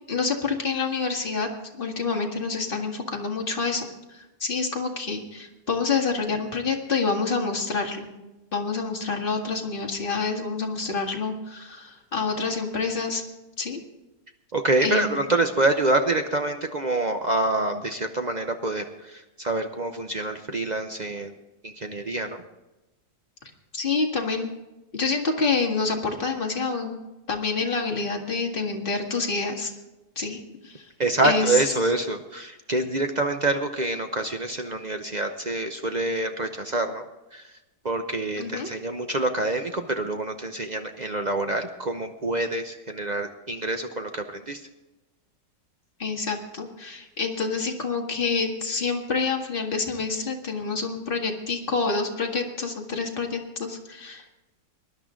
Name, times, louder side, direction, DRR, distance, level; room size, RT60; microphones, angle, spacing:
voice 1, 0.1-1.5 1.8-8.1 8.5-13.2 13.6-13.8 14.8-15.2 23.7-24.5 24.9-27.0 27.3-29.7 30.2-30.9 31.2-31.9 38.4-38.7 46.0-54.2, left 4 dB, 35° left, 1 dB, 1.9 m, -27 dB
voice 2, 14.5-21.3 21.6-22.4 31.0-37.0 37.3-37.5 37.8-44.6, right 2 dB, 45° right, 5 dB, 0.6 m, -26 dB
19.5 x 11.0 x 3.8 m, 1.0 s
omnidirectional pair, 1.8 m